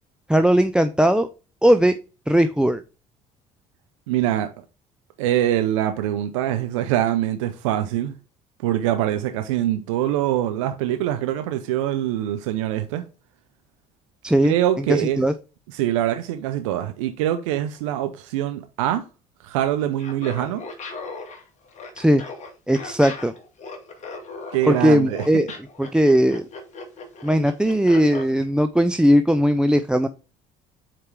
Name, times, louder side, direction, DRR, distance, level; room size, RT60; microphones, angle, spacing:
voice 1, 0.3-1.3 1.6-1.9 2.3-2.8 14.2-15.3 21.9-22.2 22.7-23.3 24.7-25.5 25.8-26.5 27.2-30.1, equal, 5° right, 0.6 m, -18 dB
voice 2, 4.1-4.5 5.2-8.1 8.6-13.0 14.4-15.2 15.7-19.0 19.4-20.6 24.5-25.2, right 12 dB, 90° right, 0.6 m, -24 dB
Laughter, 19.9-28.3, left 3 dB, 45° left, 2.3 m, -37 dB
5.9 x 4.7 x 4.6 m
supercardioid pair, 75°, 16 cm